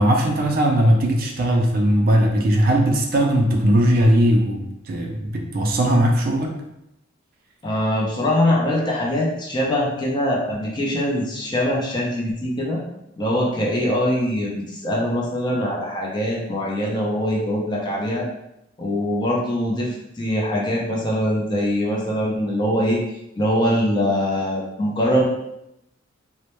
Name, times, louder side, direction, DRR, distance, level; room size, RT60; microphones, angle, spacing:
voice 1, 0.0-6.5, equal, 45° right, 2 dB, 0.3 m, -18 dB
voice 2, 7.6-12.8 13.2-18.3 18.8-23.0 23.4-25.2, equal, 20° left, -3 dB, 0.4 m, -22 dB
2.1 x 2.1 x 2.9 m, 0.85 s
head